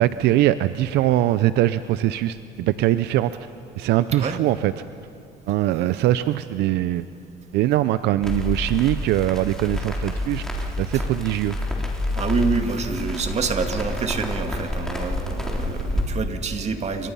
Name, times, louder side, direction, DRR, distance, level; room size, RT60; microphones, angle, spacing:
voice 1, 0.0-3.3 3.8-4.7 5.5-7.1 7.5-10.4 10.8-11.6, right 14 dB, 85° right, 13 dB, 0.6 m, -21 dB
Crackle, 8.2-16.0, left 1 dB, 5° left, 3.7 m, -28 dB
voice 2, 12.2-17.1, right 4 dB, 40° right, 6 dB, 2.1 m, -27 dB
28.0 x 25.0 x 5.6 m, 2.6 s
cardioid pair, 110°, 17 cm